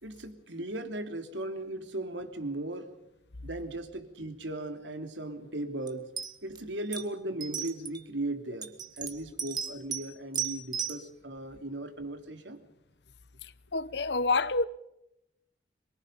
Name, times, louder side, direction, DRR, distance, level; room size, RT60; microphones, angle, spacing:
voice 1, 0.0-2.9 3.4-6.1 6.4-12.6, right 1 dB, 85° right, 3.2 m, -37 dB
sound 1, 5.9-6.0 6.2-6.6 6.9-7.0 7.4-8.0 8.6-10.1 10.3-11.0, right 8 dB, 25° right, 2.0 m, -34 dB
voice 2, 13.4-14.6, left 3 dB, 65° left, 1.1 m, -28 dB
26.0 x 23.0 x 5.3 m
head